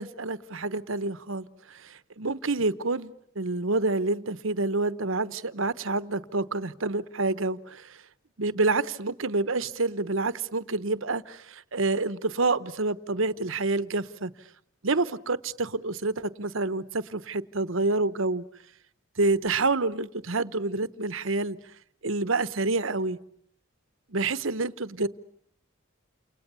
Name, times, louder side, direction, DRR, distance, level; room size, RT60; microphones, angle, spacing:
voice 1, 0.0-8.0 8.4-14.3 14.8-18.4 19.2-21.6 22.0-23.2 24.1-25.1, right 3 dB, 70° right, 1.1 m, -28 dB
29.5 x 28.5 x 7.0 m
head